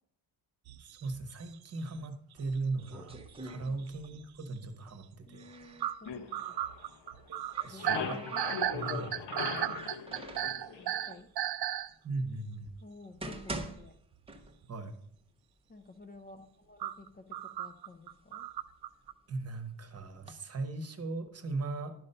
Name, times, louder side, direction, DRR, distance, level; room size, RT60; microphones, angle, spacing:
sound 1, 0.7-2.3 2.6-4.2 4.6-4.8 5.1-5.2 5.8-11.9 12.6-12.7 14.6-14.7 16.8-19.1, right 12 dB, 60° right, 0.5 m, -35 dB
voice 1, 0.8-3.2 3.4-5.4 7.6-8.2 8.7-9.8 12.0-12.7 14.7-14.9 19.3-21.9, right 3 dB, 35° right, 8 dB, 1.0 m, -38 dB
sound 2, 2.4-4.3 4.5-6.0 7.1-9.1 9.7-10.6 11.4-11.5 12.1-12.2 12.9-14.9 15.2-15.3 16.0-16.1 16.5-17.1 17.7-19.3 20.0-20.3, right 1 dB, 15° right, 0.7 m, -45 dB
voice 2, 5.2-6.6 7.7-8.3 10.6-11.3 12.8-14.0 15.7-18.5, left 2 dB, 25° left, 4 dB, 0.4 m, -53 dB
sound 3, 6.1-7.2 7.5-11.2, left 6 dB, 75° left, 1.0 m, -40 dB
11.0 x 5.4 x 5.5 m, 0.70 s
wide cardioid pair, 170°, 42 cm